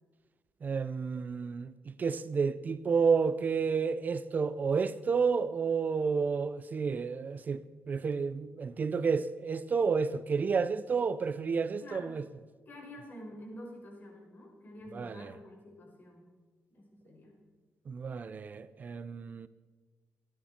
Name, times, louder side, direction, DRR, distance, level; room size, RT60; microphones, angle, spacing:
voice 1, 0.6-7.6 7.9-12.2 14.9-15.3 17.9-19.5, right 5 dB, 40° right, 0.5 m, -30 dB
voice 2, 11.8-12.2 12.7-16.2 16.7-17.4, left 1 dB, 45° left, 5.6 m, -48 dB
27.5 x 10.0 x 4.4 m
cardioid pair, 135°, 5 cm